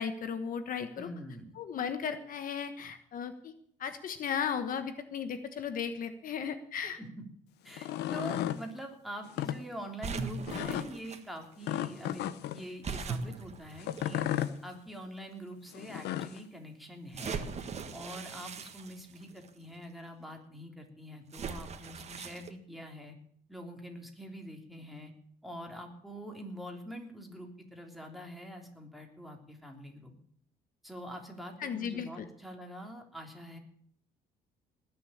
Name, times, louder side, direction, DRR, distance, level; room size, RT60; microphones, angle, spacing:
voice 1, 0.0-1.1 1.6-3.5 3.8-7.0 31.6-32.1, left 7 dB, 55° left, 10 dB, 1.3 m, -35 dB
voice 2, 1.0-1.5 7.0-7.2 7.6-14.3 14.6-17.5 17.9-23.2 23.5-25.1 25.4-30.1 30.8-33.6, equal, ahead, 2 dB, 3.3 m, -45 dB
sound 1, 7.7-8.6 9.3-9.6 10.5-10.9 11.6-12.6 13.8-14.5 15.7-16.4, left 12 dB, 80° left, 0.9 m, -34 dB
sound 2, 10.0-11.2 12.8-14.5 15.2-15.3 17.1-19.5 21.3-22.5, right 5 dB, 40° right, 1.7 m, -39 dB
19.5 x 7.1 x 8.6 m, 0.65 s
cardioid pair, 110°, 17 cm